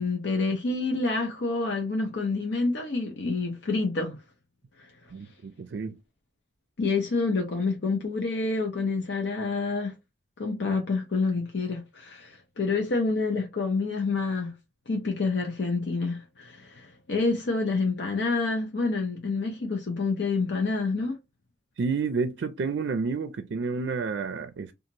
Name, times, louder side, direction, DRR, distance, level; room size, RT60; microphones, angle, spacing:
voice 1, 0.0-4.2 4.8-4.9 6.8-9.9 10.4-14.5 14.9-21.2, left 3 dB, 75° left, 0.7 m, -28 dB
voice 2, 5.1-5.9 21.8-24.7, right 4 dB, 75° right, 0.4 m, -30 dB
2.9 x 2.4 x 2.5 m
head